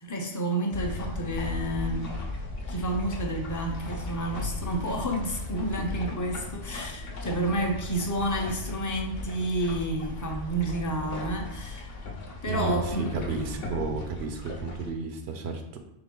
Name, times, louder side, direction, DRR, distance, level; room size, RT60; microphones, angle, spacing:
voice 1, 0.0-2.1 2.7-12.0 12.4-13.7, right 1 dB, 25° left, 1 dB, 0.5 m, -30 dB
sound 1, 0.7-14.9, left 2 dB, 65° left, 0.9 m, -36 dB
voice 2, 12.5-15.8, right 4 dB, 80° right, 5 dB, 0.9 m, -32 dB
3.8 x 3.3 x 3.7 m, 0.81 s
omnidirectional pair, 1.1 m